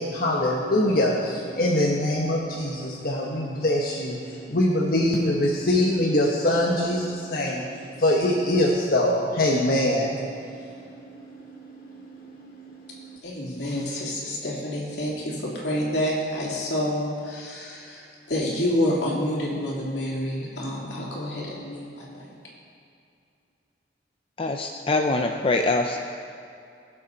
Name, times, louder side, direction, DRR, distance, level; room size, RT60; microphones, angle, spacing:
voice 1, 0.0-13.2, left 1 dB, 55° left, -4 dB, 1.2 m, -24 dB
voice 2, 13.2-22.3, left 1 dB, 75° left, -4 dB, 2.8 m, -28 dB
voice 3, 24.4-26.0, left 2 dB, 30° left, 4 dB, 0.5 m, -24 dB
21.5 x 7.4 x 4.1 m, 2.5 s
head